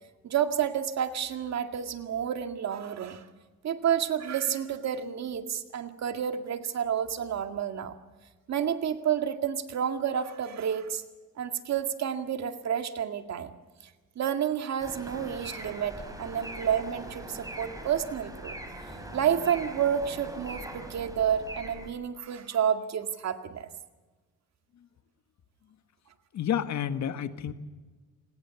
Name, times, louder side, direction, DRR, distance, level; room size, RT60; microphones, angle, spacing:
voice 1, 0.2-3.2 3.6-7.9 8.5-11.0 11.4-13.6 14.2-18.6 19.1-23.7, right 8 dB, 60° right, 7 dB, 2.1 m, -30 dB
sound 1, 14.8-21.9, right 1 dB, 10° right, 5.6 m, -42 dB
voice 2, 26.3-27.5, left 9 dB, 65° left, 10 dB, 1.7 m, -30 dB
29.5 x 20.0 x 7.1 m, 1.3 s
cardioid pair, 90°, 30 cm